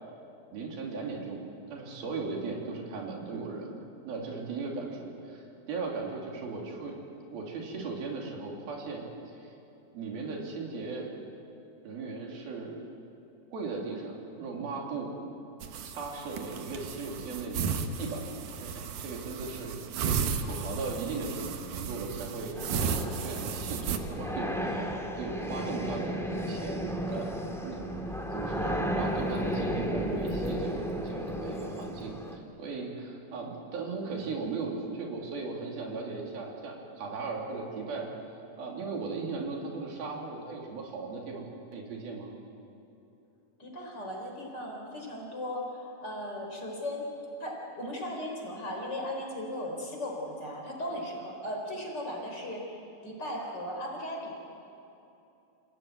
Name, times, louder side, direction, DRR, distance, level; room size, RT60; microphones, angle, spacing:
voice 1, 0.5-1.4 1.7-3.8 4.0-7.0 7.3-9.1 9.3-9.5 9.9-11.1 11.8-12.7 13.5-15.1 15.8-17.7 18.0-18.3 18.6-19.8 20.4-24.9 25.2-26.2 26.5-27.8 28.3-38.1 38.6-41.4 41.7-42.3, right 4 dB, 90° right, -1 dB, 4.9 m, -37 dB
sound 1, 15.6-24.0, right 6 dB, 65° right, 2.6 m, -34 dB
sound 2, 22.5-32.3, equal, ahead, 1.3 m, -34 dB
voice 2, 43.6-47.1 47.4-54.4, left 1 dB, 30° left, -1 dB, 4.7 m, -37 dB
28.0 x 17.5 x 9.3 m, 2.8 s
omnidirectional pair, 4.1 m